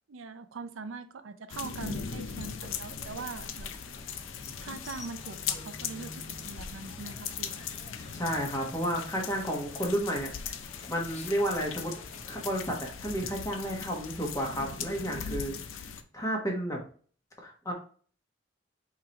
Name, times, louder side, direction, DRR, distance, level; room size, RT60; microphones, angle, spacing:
voice 1, 0.1-3.7 4.6-7.5, right 4 dB, 85° right, 11 dB, 0.5 m, -42 dB
sound 1, 1.5-16.0, left 7 dB, 80° left, 0.5 m, -39 dB
sound 2, 1.9-12.7, left 2 dB, 35° left, 0.7 m, -49 dB
voice 2, 8.1-10.3 10.9-11.9 12.3-15.5 16.1-16.8 17.4-17.7, equal, 20° left, 0 dB, 1.2 m, -31 dB
4.5 x 3.8 x 2.9 m, 0.43 s
head